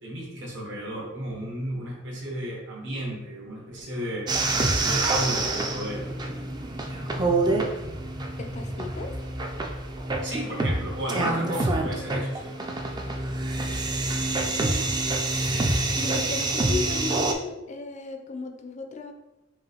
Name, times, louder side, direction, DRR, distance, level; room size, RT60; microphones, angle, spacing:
voice 1, 0.0-4.3 4.8-6.1 10.2-12.5, right 1 dB, 65° right, -1 dB, 1.1 m, -33 dB
sound 1, 4.3-17.3, right 2 dB, 20° right, 0.4 m, -27 dB
voice 2, 8.4-9.2 16.0-19.1, left 3 dB, 40° left, 5 dB, 0.4 m, -35 dB
5.6 x 2.6 x 2.9 m, 1.0 s
head